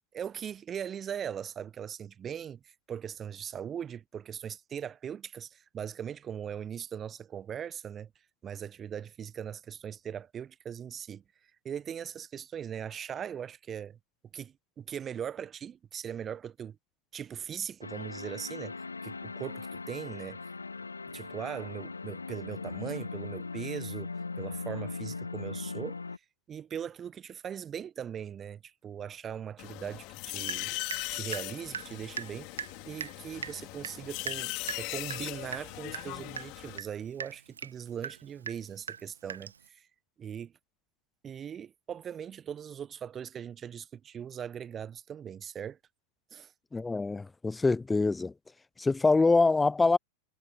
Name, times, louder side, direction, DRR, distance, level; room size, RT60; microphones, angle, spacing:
voice 1, 0.1-8.1 8.4-11.2 11.6-14.0 14.3-16.8 17.1-20.4 21.1-24.1 24.4-26.0 26.5-30.7 31.1-39.9 40.2-40.5 41.2-45.8 46.3-46.5, right 8 dB, 25° right, 1.4 m, -40 dB
sound 1, 17.8-26.2, left 4 dB, 80° left, 1.2 m, -39 dB
sound 2, 29.6-36.8, left 26 dB, 40° left, 4.2 m, -39 dB
Water tap faucet / Drip, 30.4-31.1 31.3-39.7, right 7 dB, 70° right, 1.4 m, -41 dB
voice 2, 46.7-48.3 48.8-50.0, left 3 dB, 10° left, 0.5 m, -25 dB
figure-of-eight pair, 90°, 0 cm